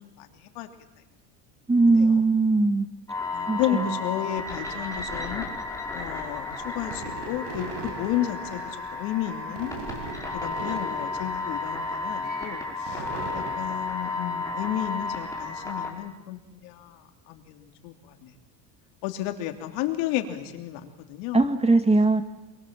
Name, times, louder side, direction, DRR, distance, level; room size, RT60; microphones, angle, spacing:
voice 1, 0.2-0.7 1.9-2.2 3.3-5.5 5.9-9.7 10.3-13.1 13.3-18.3 19.0-21.4, left 13 dB, 80° left, 6 dB, 3.1 m, -32 dB
voice 2, 1.7-2.9 3.5-4.0 21.3-22.2, right 3 dB, 15° right, 9 dB, 1.8 m, -20 dB
sound 1, 3.1-15.9, left 3 dB, 5° left, 5.0 m, -33 dB
sound 2, 5.7-15.5, right 4 dB, 70° right, 6.8 m, -41 dB
26.5 x 23.0 x 7.5 m, 1.1 s
cardioid pair, 120°, 46 cm